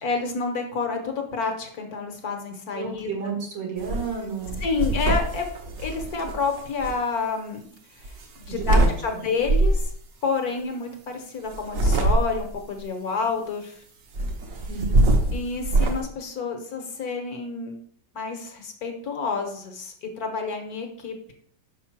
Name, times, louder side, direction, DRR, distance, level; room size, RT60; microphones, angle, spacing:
voice 1, 0.0-3.2 4.6-5.4 5.8-7.6 7.9-9.9 10.2-13.8 15.3-17.8 18.1-21.3, left 4 dB, 60° left, 4 dB, 1.4 m, -29 dB
voice 2, 2.7-4.6 8.5-9.2 14.7-15.1, right 5 dB, 75° right, 0 dB, 2.6 m, -32 dB
sound 1, 3.8-4.1 4.4-6.9 8.0-8.9 9.4-9.9 11.5-12.6 14.1-16.0, right 2 dB, 55° right, 1.2 m, -23 dB
5.4 x 4.7 x 5.9 m, 0.62 s
omnidirectional pair, 1.9 m